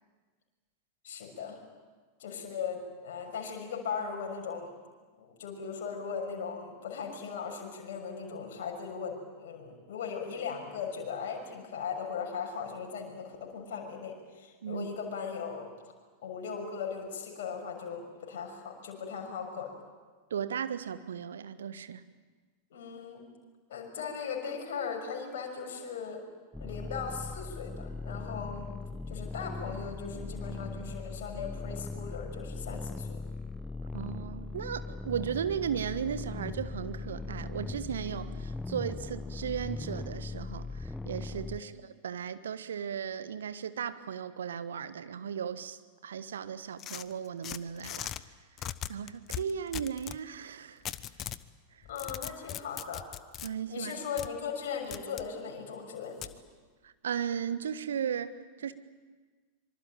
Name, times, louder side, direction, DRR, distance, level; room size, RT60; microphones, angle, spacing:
voice 1, 1.0-1.6 2.2-4.7 5.2-15.7 16.2-19.7 22.7-23.2 23.7-26.2 26.6-28.7 29.1-33.2 41.5-41.7 51.9-53.0 53.7-56.3, left 6 dB, 55° left, 1 dB, 6.2 m, -38 dB
voice 2, 20.3-22.0 33.9-48.1 48.9-50.8 51.7-51.9 53.4-53.9 56.8-58.7, right 8 dB, 65° right, 12 dB, 1.3 m, -36 dB
sound 1, 26.5-41.6, left 3 dB, 5° left, 0.9 m, -39 dB
sound 2, 46.8-48.2 48.6-50.2 50.9-51.4 51.8-53.5 54.2-54.3 54.9-55.3 56.2-56.4, left 11 dB, 30° left, 0.9 m, -39 dB
25.5 x 24.0 x 9.0 m, 1.4 s
figure-of-eight pair, 90°, 0 cm